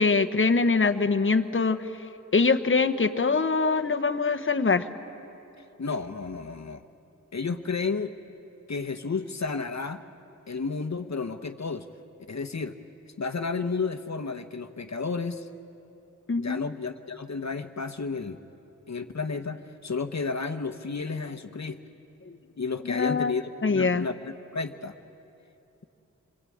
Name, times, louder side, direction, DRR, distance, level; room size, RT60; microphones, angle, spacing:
voice 1, 0.0-1.8 2.3-4.9 16.3-16.6 22.9-23.3 23.6-24.1, left 4 dB, 40° left, 8 dB, 1.1 m, -23 dB
voice 2, 5.8-6.8 7.3-8.1 8.7-10.0 10.5-11.9 12.3-12.8 13.2-15.5 16.4-18.4 18.9-21.8 22.6-24.9, left 4 dB, 60° left, 7 dB, 1.1 m, -32 dB
27.0 x 24.0 x 8.6 m, 2.9 s
wide cardioid pair, 75°, 31 cm